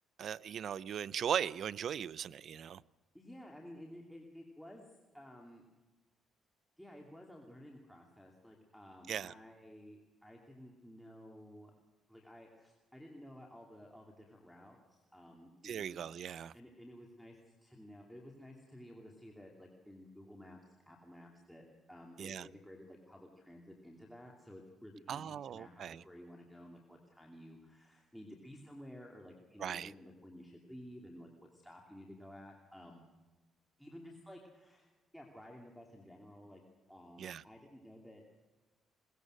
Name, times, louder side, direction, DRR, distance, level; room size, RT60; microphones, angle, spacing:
voice 1, 0.2-2.8 9.1-9.3 15.6-16.5 22.2-22.5 25.1-26.0 29.6-29.9 37.2-37.4, right 8 dB, 55° right, 0.6 m, -38 dB
voice 2, 3.1-4.8 5.1-5.6 6.8-11.7 12.1-16.0 16.5-33.0 33.8-36.6 36.9-38.2, equal, ahead, 2.8 m, -54 dB
21.5 x 19.0 x 6.5 m
cardioid pair, 110°, 0 cm